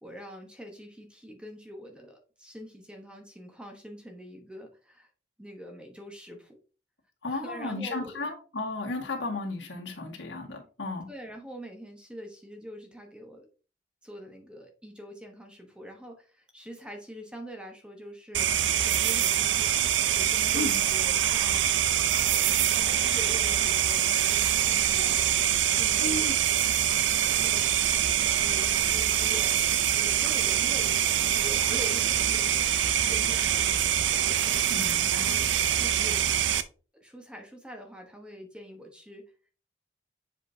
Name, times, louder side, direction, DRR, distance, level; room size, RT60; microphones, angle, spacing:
voice 1, 0.0-5.1 5.4-6.6 7.3-8.2 11.1-13.5 14.0-19.8 20.1-21.7 22.2-25.2 25.6-26.4 27.1-27.7 28.2-32.7 33.1-34.6 35.2-36.3 36.9-39.3, equal, 5° right, 2 dB, 1.0 m, -44 dB
voice 2, 7.2-11.1 20.5-20.8 26.0-26.4 34.7-35.3, left 2 dB, 90° left, 1 dB, 1.7 m, -34 dB
sound 1, 18.3-36.6, right 10 dB, 85° right, 0.5 m, -25 dB
7.4 x 5.1 x 2.7 m, 0.36 s
head